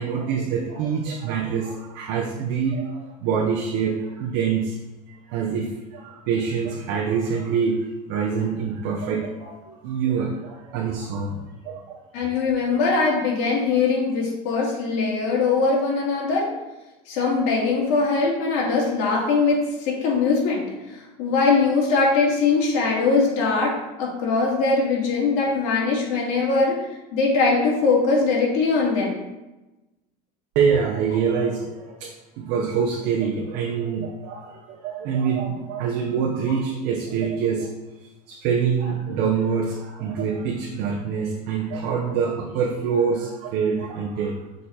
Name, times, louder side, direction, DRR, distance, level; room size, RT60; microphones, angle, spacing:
voice 1, 0.0-4.8 5.3-12.0 30.5-37.7 38.3-44.3, right 6 dB, 65° right, -2 dB, 1.0 m, -25 dB
voice 2, 12.1-16.5 17.1-26.8 27.1-29.2, left 4 dB, 75° left, -3 dB, 2.4 m, -21 dB
6.6 x 4.2 x 4.2 m, 1.0 s
cardioid pair, 165°, 19 cm